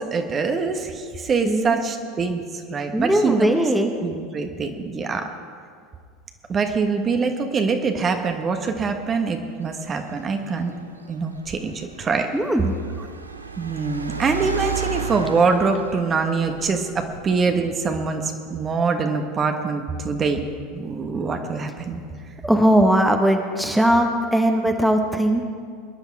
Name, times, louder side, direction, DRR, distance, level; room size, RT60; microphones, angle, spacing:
voice 1, 0.0-3.6 4.0-5.3 6.5-10.7 11.1-12.3 13.6-20.4 20.7-22.0, right 4 dB, 30° right, 5 dB, 1.4 m, -24 dB
voice 2, 1.4-1.8 2.9-3.9 12.3-12.8 22.4-25.4, right 1 dB, 5° right, 4 dB, 1.3 m, -19 dB
Car, 9.5-17.4, right 5 dB, 90° right, 0.8 m, -34 dB
22.5 x 10.5 x 4.7 m, 2.1 s
figure-of-eight pair, 80°, 0 cm